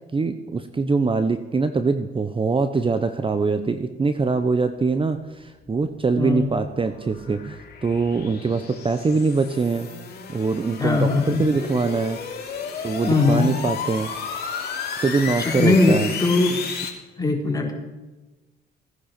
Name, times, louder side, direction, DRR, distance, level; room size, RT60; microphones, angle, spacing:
voice 1, 0.1-9.9 10.3-12.2 12.8-14.1 15.0-16.1, right 4 dB, 25° right, 9 dB, 0.9 m, -23 dB
sound 1, 5.6-16.9, left 6 dB, 55° left, 3.0 m, -33 dB
voice 2, 6.2-6.5 10.8-11.4 13.1-13.5 15.4-16.6 17.2-17.7, left 3 dB, 20° left, 0 dB, 3.9 m, -20 dB
17.0 x 10.0 x 5.8 m, 1.1 s
cardioid pair, 90°, 20 cm